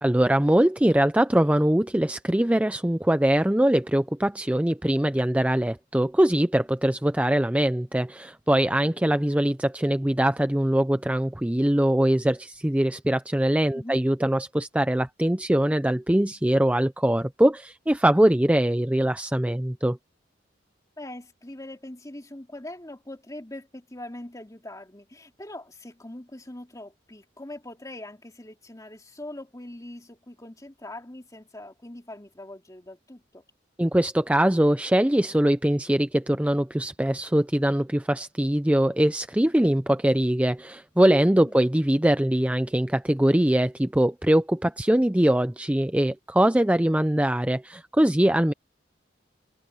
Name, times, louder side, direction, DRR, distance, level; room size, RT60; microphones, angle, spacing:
voice 1, 0.0-20.0 33.8-48.5, right 1 dB, 5° right, 0.5 m, -22 dB
voice 2, 8.8-9.2 13.7-14.0 21.0-33.4 41.4-41.7, left 1 dB, 20° left, 2.6 m, -42 dB
head